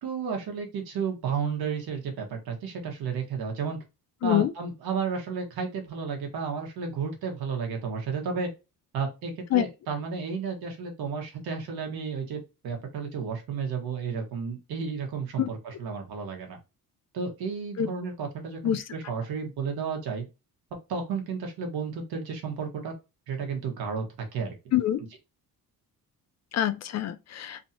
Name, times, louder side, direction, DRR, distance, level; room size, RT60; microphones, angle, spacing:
voice 1, 0.0-3.8 4.2-8.5 8.9-16.6 17.1-20.2 20.9-22.9 23.3-24.5, right 5 dB, 85° right, 1.3 m, -32 dB
voice 2, 4.2-4.5 9.5-9.7 15.4-15.5 17.8-17.9 18.6-18.8 24.7-25.0 26.5-27.6, left 11 dB, 50° left, 0.4 m, -25 dB
3.1 x 2.7 x 2.7 m
cardioid pair, 120°, 36 cm